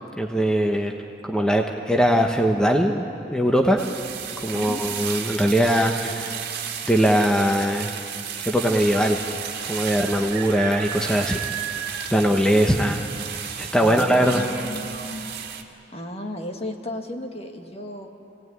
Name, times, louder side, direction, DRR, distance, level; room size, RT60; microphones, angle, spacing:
voice 1, 0.2-0.9 1.2-3.0 3.3-3.8 4.4-6.4 6.9-7.9 8.4-9.2 9.7-11.5 12.1-13.0 13.6-14.4, equal, 5° left, 2 dB, 1.0 m, -21 dB
voice 2, 3.7-4.0 4.5-4.8 13.8-15.3 15.9-18.1, left 1 dB, 35° left, 4 dB, 1.8 m, -35 dB
sound 1, 3.8-15.6, right 8 dB, 55° right, 1.9 m, -33 dB
26.5 x 18.0 x 9.6 m, 2.8 s
head